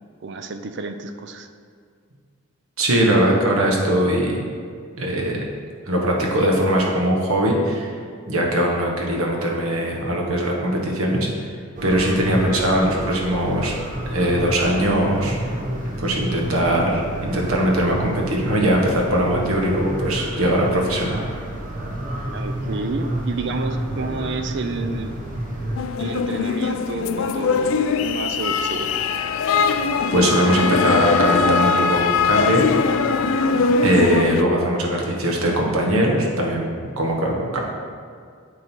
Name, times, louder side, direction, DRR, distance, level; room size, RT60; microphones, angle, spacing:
voice 1, 0.2-1.5 22.3-25.1 26.0-28.9, right 3 dB, 50° right, 7 dB, 0.4 m, -30 dB
voice 2, 2.8-4.4 5.0-5.4 5.9-7.9 8.3-11.5 11.8-13.7 14.1-15.4 16.0-21.2 29.6-29.8 30.1-32.6 33.8-36.7 37.0-37.6, right 1 dB, 75° right, -1 dB, 1.2 m, -20 dB
sound 1, 11.8-25.8, right 1 dB, 35° right, 0.8 m, -30 dB
sound 2, 25.8-34.4, left 5 dB, 65° left, 0.3 m, -21 dB
8.7 x 3.8 x 4.5 m, 2.2 s
head